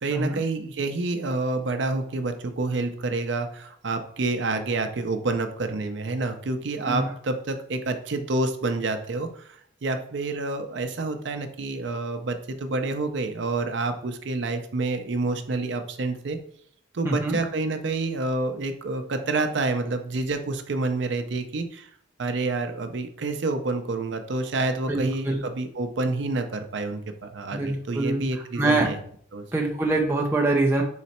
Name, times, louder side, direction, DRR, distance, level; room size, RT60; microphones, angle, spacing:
voice 1, 0.0-9.6 9.8-16.4 16.9-21.9 22.2-29.0 29.3-29.5, right 3 dB, 70° right, 7 dB, 0.5 m, -28 dB
voice 2, 17.0-17.4 24.9-25.4 27.5-28.2 28.6-28.9 29.5-30.8, right 2 dB, 10° right, -1 dB, 0.5 m, -24 dB
4.0 x 3.1 x 4.2 m, 0.63 s
head